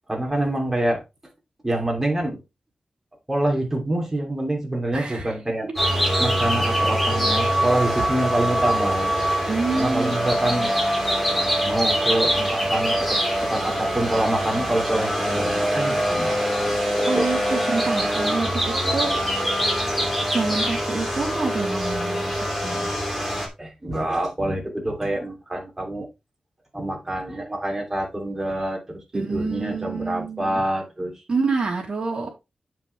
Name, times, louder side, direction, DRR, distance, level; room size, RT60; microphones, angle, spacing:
voice 1, 0.1-1.0 1.6-2.4 3.3-5.7 6.2-9.1 9.7-10.7 11.6-16.4 17.1-17.3 23.3-26.1 26.7-31.1, right 1 dB, 15° right, 0 dB, 2.8 m, -26 dB
voice 2, 4.9-5.3 5.6-5.7 9.5-10.1 17.1-19.2 20.3-23.0 29.1-30.6 31.3-32.3, right 4 dB, 45° right, 0 dB, 3.2 m, -27 dB
sound 1, 5.8-23.5, equal, 5° left, 2.9 m, -23 dB
8.1 x 7.4 x 3.4 m, 0.24 s
wide cardioid pair, 175°, 2 cm